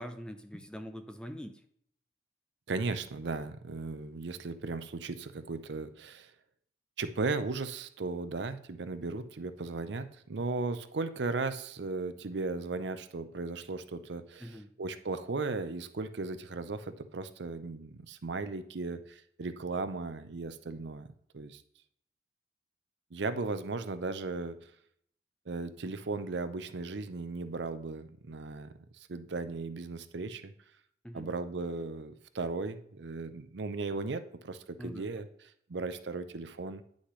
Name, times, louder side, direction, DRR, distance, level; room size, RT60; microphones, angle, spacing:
voice 1, 0.0-1.5 14.4-14.7 31.0-31.3 34.8-35.1, equal, 5° left, 7 dB, 0.5 m, -43 dB
voice 2, 2.7-6.3 7.0-21.1 21.3-21.6 23.1-24.7 25.5-30.5 31.1-35.3 35.7-36.8, right 3 dB, 65° right, 11 dB, 0.6 m, -36 dB
9.7 x 6.3 x 3.2 m, 0.66 s
head